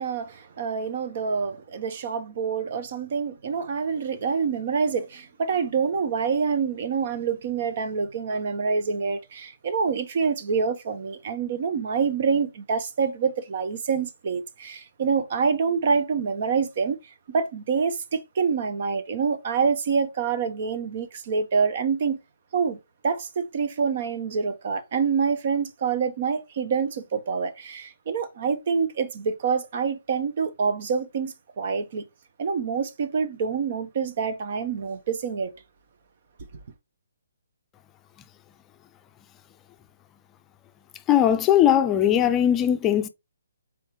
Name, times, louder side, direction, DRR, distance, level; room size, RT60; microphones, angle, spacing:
voice 1, 0.0-22.2 22.5-32.1 32.4-35.5, right 5 dB, 50° right, 1.1 m, -26 dB
voice 2, 41.1-43.1, left 10 dB, 15° left, 0.6 m, -19 dB
6.9 x 4.6 x 3.1 m
figure-of-eight pair, 145°, 0 cm